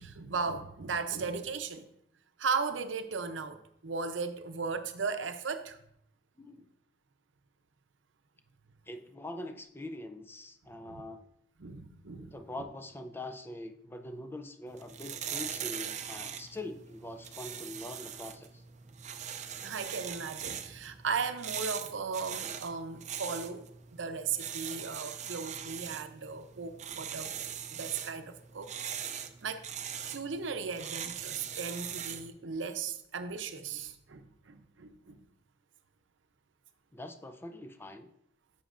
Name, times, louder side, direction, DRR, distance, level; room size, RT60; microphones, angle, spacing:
voice 1, 0.0-1.9 2.4-5.8 10.9-11.0 11.6-12.4 19.6-23.6 23.9-27.3 27.7-28.7 29.1-29.6 30.1-35.3, right 5 dB, 90° right, 0.6 m, -36 dB
voice 2, 6.4-6.7 8.9-11.3 12.2-18.6 36.9-38.1, left 1 dB, 10° left, 0.4 m, -43 dB
sound 1, 14.7-32.3, right 8 dB, 40° right, 0.5 m, -41 dB
10.5 x 7.0 x 2.5 m
head